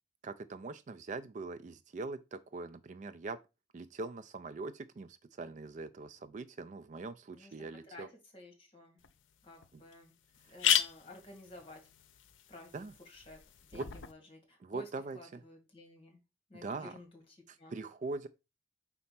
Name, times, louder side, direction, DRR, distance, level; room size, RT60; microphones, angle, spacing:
voice 1, 0.2-3.4 3.7-8.1 12.7-12.9 13.7-13.9 14.6-15.4 16.6-16.9 17.5-18.3, right 3 dB, 40° right, 0.3 m, -42 dB
voice 2, 8.3-9.0 9.4-10.1 10.5-11.9 12.5-16.2 16.5-17.8, left 1 dB, 30° left, 1.9 m, -53 dB
sound 1, 9.0-9.1 9.6-9.7 9.9-10.0 10.3-14.1, left 9 dB, 85° left, 0.6 m, -35 dB
4.3 x 4.1 x 5.7 m
head